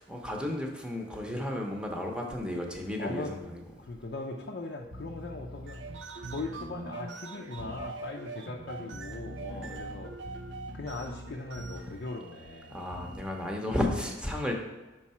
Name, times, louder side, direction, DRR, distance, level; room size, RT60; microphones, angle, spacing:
voice 1, 0.0-3.6 9.5-9.8 12.7-14.5, left 1 dB, 5° right, 1 dB, 0.8 m, -33 dB
voice 2, 3.0-3.4 3.8-5.8 6.3-10.1 10.7-12.8, left 3 dB, 60° left, 0 dB, 0.5 m, -39 dB
sound 1, 4.8-6.7 7.6-8.0 8.9-12.1 12.9-13.3, equal, 60° right, 1.0 m, -44 dB
sound 2, 5.5-13.8, right 4 dB, 85° right, 0.6 m, -44 dB
5.9 x 4.7 x 4.3 m, 1.1 s
head